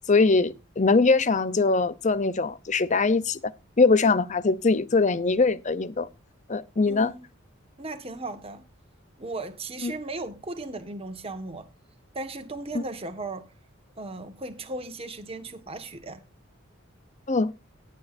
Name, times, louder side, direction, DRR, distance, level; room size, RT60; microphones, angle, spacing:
voice 1, 0.1-3.5 3.8-6.1 6.5-7.1 9.8-9.9 12.7-12.8 17.3-17.5, left 3 dB, 35° left, 0.7 m, -22 dB
voice 2, 6.9-7.2 7.8-8.6 9.2-11.7 12.1-13.5 14.0-16.2, right 2 dB, 30° right, 1.5 m, -36 dB
18.0 x 8.4 x 2.6 m
head